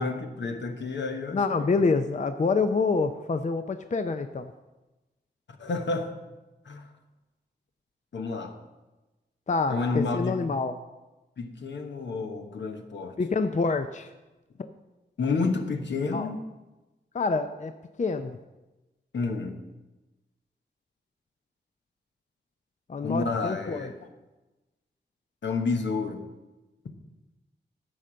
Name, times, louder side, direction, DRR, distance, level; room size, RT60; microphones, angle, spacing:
voice 1, 0.0-1.7 5.6-6.1 6.6-6.9 8.1-8.5 9.7-10.4 11.4-13.2 15.2-16.4 19.1-19.6 23.0-24.1 25.4-26.2, left 4 dB, 80° left, 4 dB, 1.2 m, -30 dB
voice 2, 1.3-4.5 9.5-10.7 13.2-14.1 14.6-14.7 16.1-16.3 17.1-17.7 18.0-18.4 22.9-23.9, left 4 dB, 40° left, 8 dB, 0.5 m, -27 dB
11.0 x 5.2 x 7.5 m, 1.1 s
wide cardioid pair, 70°, 19 cm